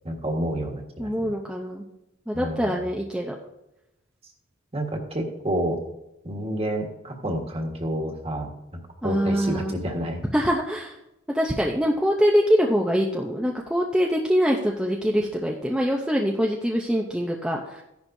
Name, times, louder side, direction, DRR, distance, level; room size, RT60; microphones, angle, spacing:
voice 1, 0.0-1.3 2.3-2.7 4.7-5.8 6.2-10.2, right 1 dB, 30° right, 2 dB, 1.5 m, -29 dB
voice 2, 1.0-1.8 2.3-3.4 9.0-9.7 10.3-11.0 11.3-17.8, equal, 5° right, -1 dB, 0.6 m, -24 dB
14.0 x 10.5 x 2.7 m, 0.90 s
head